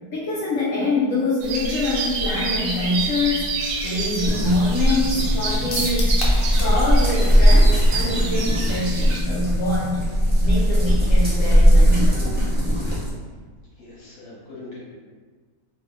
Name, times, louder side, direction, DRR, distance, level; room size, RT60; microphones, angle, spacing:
voice 1, 0.1-3.5 3.8-10.0 10.4-12.3, left 2 dB, 65° left, -8 dB, 0.9 m, -25 dB
sound 1, 1.4-9.2, right 3 dB, 90° right, 1.1 m, -28 dB
sound 2, 4.2-13.1, equal, 15° right, 0.3 m, -18 dB
sound 3, 5.7-6.8 7.1-7.2 7.5-7.6, left 2 dB, 90° left, 1.1 m, -31 dB
voice 2, 13.7-14.9, left 2 dB, 45° left, -7 dB, 1.1 m, -41 dB
2.7 x 2.1 x 3.5 m, 1.5 s
omnidirectional pair, 1.6 m